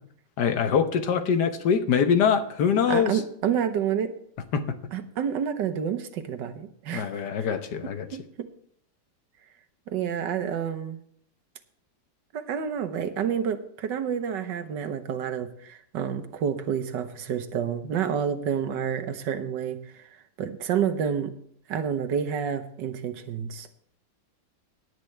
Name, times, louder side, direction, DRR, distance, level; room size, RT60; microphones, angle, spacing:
voice 1, 0.4-3.2 4.5-4.6 6.9-8.1, left 7 dB, 70° left, 8 dB, 1.5 m, -23 dB
voice 2, 2.9-4.1 4.9-7.3 7.8-8.5 9.9-11.0 12.3-20.0 20.4-21.3 21.7-23.7, right 8 dB, 85° right, 9 dB, 1.6 m, -29 dB
17.0 x 9.8 x 3.3 m, 0.67 s
omnidirectional pair, 1.9 m